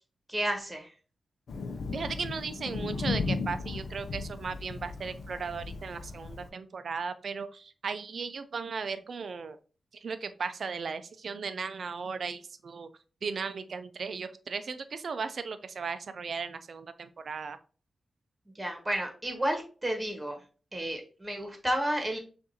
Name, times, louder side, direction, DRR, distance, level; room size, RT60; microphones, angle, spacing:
voice 1, 0.3-0.9 18.5-20.4 20.7-22.2, right 1 dB, 15° right, 3 dB, 1.3 m, -31 dB
Thunder, 1.5-6.5, left 4 dB, 80° left, 0.6 m, -36 dB
voice 2, 1.9-9.6 9.9-12.9 13.2-17.6, right 5 dB, 65° right, 11 dB, 0.5 m, -36 dB
6.2 x 2.6 x 2.8 m, 0.37 s
wide cardioid pair, 85°, 0 cm